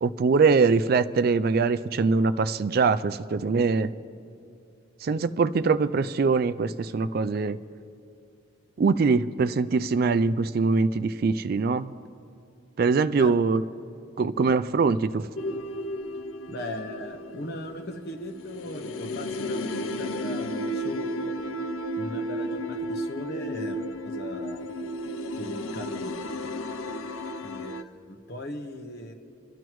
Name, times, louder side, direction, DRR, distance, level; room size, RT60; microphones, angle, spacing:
voice 1, 0.0-3.9 5.0-7.6 8.8-11.9 12.8-13.6 14.2-15.3, right 4 dB, 50° right, 14 dB, 0.3 m, -23 dB
sound 1, 15.4-27.8, equal, 80° left, 0.6 m, -33 dB
voice 2, 16.5-21.3 22.0-24.6 25.3-26.5 27.4-29.1, left 1 dB, 50° left, 3 dB, 1.2 m, -38 dB
30.0 x 12.5 x 3.1 m, 2.5 s
head